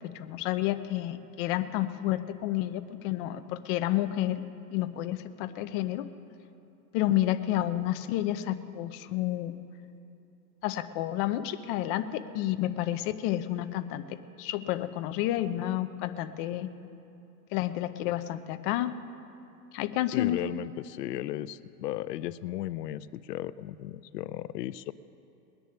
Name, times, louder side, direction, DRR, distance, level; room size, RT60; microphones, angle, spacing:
voice 1, 0.0-4.4 4.7-6.1 6.9-9.6 10.6-16.7 17.5-19.0 19.7-20.4, left 14 dB, 35° left, 10 dB, 0.6 m, -30 dB
voice 2, 20.1-24.9, left 13 dB, 80° left, 16 dB, 0.6 m, -35 dB
20.0 x 7.1 x 9.8 m, 2.8 s
supercardioid pair, 140°, 48 cm